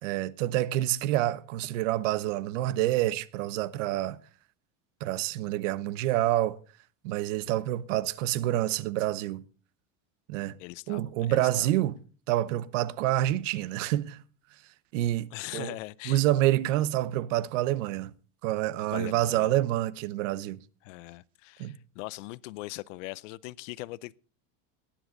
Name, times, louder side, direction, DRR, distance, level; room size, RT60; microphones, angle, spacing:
voice 1, 0.0-4.2 5.0-6.6 7.0-9.4 10.3-10.6 10.9-12.0 12.3-14.2 14.9-15.8 16.0-18.1 18.4-20.6 21.6-21.8, right 14 dB, 75° right, 0.9 m, -27 dB
voice 2, 10.6-11.7 15.3-16.2 18.9-19.5 20.8-24.2, left 20 dB, 80° left, 0.7 m, -41 dB
18.5 x 10.0 x 3.9 m
supercardioid pair, 145°, 37 cm